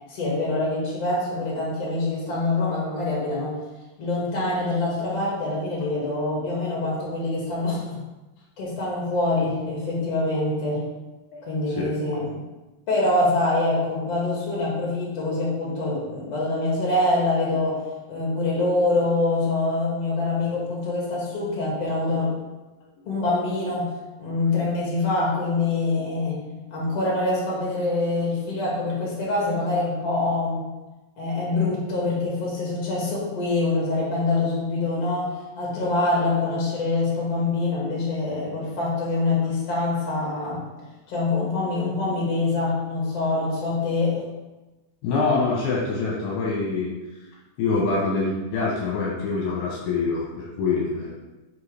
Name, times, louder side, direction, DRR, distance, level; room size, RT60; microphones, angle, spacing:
voice 1, 0.1-3.6 4.0-8.0 8.6-10.8 11.5-12.3 12.9-22.3 23.1-23.9 24.2-26.4 26.7-30.7 31.2-40.6 41.1-44.2, left 2 dB, 50° left, -5 dB, 3.1 m, -25 dB
voice 2, 45.0-46.9 47.6-51.1, left 4 dB, 80° left, -3 dB, 2.6 m, -25 dB
8.2 x 4.9 x 3.4 m, 1.1 s
omnidirectional pair, 3.9 m